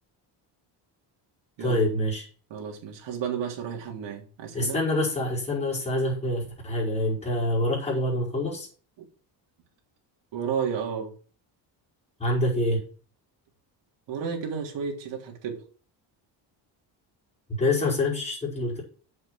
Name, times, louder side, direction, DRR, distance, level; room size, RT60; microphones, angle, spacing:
voice 1, 1.6-2.2 4.5-8.7 12.2-12.8 17.6-18.8, left 1 dB, 15° left, -6 dB, 5.4 m, -26 dB
voice 2, 2.5-4.8 9.0-9.1 10.3-11.1 14.1-15.6, right 7 dB, 75° right, 1 dB, 3.7 m, -32 dB
8.2 x 7.6 x 6.2 m, 0.40 s
cardioid pair, 160°, 44 cm